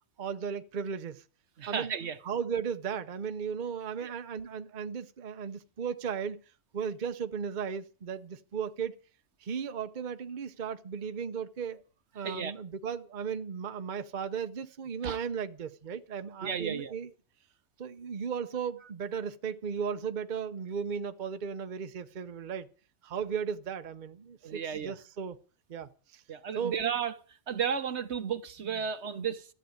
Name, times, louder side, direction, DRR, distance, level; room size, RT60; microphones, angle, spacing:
voice 1, 0.2-1.2 1.7-1.9 2.2-6.4 6.7-9.0 9.4-11.8 12.1-17.1 17.8-22.7 23.0-25.4 25.7-26.2 26.5-26.8 28.7-28.8 29.2-29.3, right 6 dB, 45° right, 0.9 m, -36 dB
voice 2, 1.6-2.2 4.0-4.1 12.2-12.5 15.0-15.2 16.4-16.9 24.4-24.9 26.3-27.1 27.5-29.5, right 7 dB, 70° right, 1.2 m, -33 dB
14.5 x 8.4 x 9.4 m
omnidirectional pair, 1.2 m